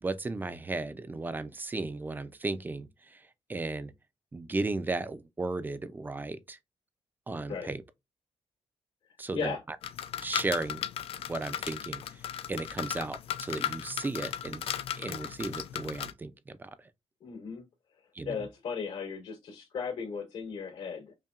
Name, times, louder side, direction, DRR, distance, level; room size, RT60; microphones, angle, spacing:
voice 1, 0.0-3.2 3.5-3.9 4.3-6.6 7.3-7.8 9.2-9.6 10.2-10.8 11.3-12.0 12.5-14.6 14.9-16.3 16.6-16.7 18.2-18.4, right 3 dB, 20° right, 0.4 m, -35 dB
sound 1, 9.8-16.1, left 10 dB, 65° left, 0.4 m, -36 dB
voice 2, 17.2-17.6 18.2-21.1, left 6 dB, 90° left, 2.4 m, -36 dB
5.4 x 2.2 x 2.4 m
cardioid pair, 145°, 11 cm